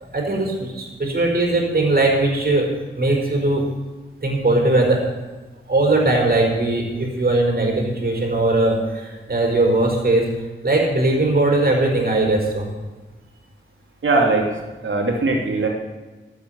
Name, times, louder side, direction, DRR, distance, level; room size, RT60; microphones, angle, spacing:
voice 1, 0.1-2.7 3.0-3.6 4.2-5.0 5.7-10.3 10.6-12.7, right 2 dB, 50° right, 0 dB, 4.7 m, -19 dB
voice 2, 14.0-15.7, right 3 dB, 80° right, 0 dB, 2.9 m, -20 dB
13.0 x 8.6 x 8.1 m, 1.2 s
wide cardioid pair, 85°, 20 cm